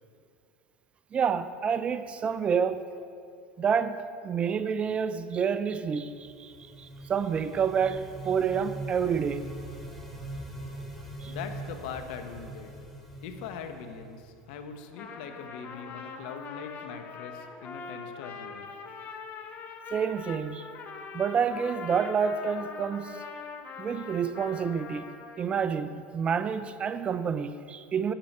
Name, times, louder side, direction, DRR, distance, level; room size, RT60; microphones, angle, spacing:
voice 1, 1.1-2.9 3.6-9.4 11.2-11.3 19.9-20.7 21.1-23.2 23.8-25.1 25.4-28.1, right 7 dB, 25° right, 0.4 m, -28 dB
Sideburn Soliloquy, 5.9-14.7, right 1 dB, ahead, 1.3 m, -42 dB
voice 2, 11.2-12.7 13.2-18.7, left 6 dB, 70° left, 1.0 m, -41 dB
Trumpet, 14.8-25.7, left 5 dB, 35° left, 1.0 m, -43 dB
9.0 x 8.7 x 5.4 m
supercardioid pair, 130°, 5 cm